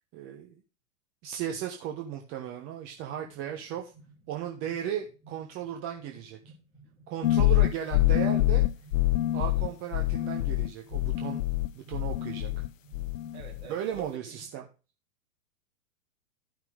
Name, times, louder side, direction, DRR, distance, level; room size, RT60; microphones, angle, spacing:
voice 1, 0.1-0.6 1.2-3.9 4.3-6.4 7.1-8.6 9.3-11.4 11.7-12.5 13.7-14.6, right 10 dB, 30° right, 2 dB, 1.1 m, -36 dB
sound 1, 2.9-14.5, right 2 dB, 10° right, 4.6 m, -56 dB
sound 2, 7.2-12.7 12.9-13.7, left 16 dB, 65° left, 0.5 m, -25 dB
voice 2, 13.3-14.4, right 7 dB, 50° right, 1 dB, 2.9 m, -46 dB
13.5 x 6.0 x 3.3 m, 0.32 s
figure-of-eight pair, 100°, 42 cm